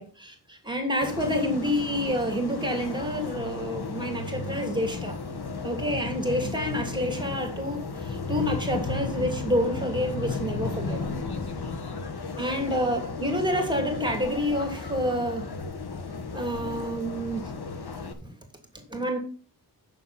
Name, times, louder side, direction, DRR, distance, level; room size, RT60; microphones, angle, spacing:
voice 1, 0.0-5.2 5.6-11.1 12.4-15.5 16.3-17.5 18.2-18.3 18.7-19.2, equal, 10° right, 2.8 m, -28 dB
sound 1, 1.0-18.1, left 3 dB, 70° left, 1.5 m, -34 dB
9.3 x 6.8 x 5.7 m
wide cardioid pair, 100°, 39 cm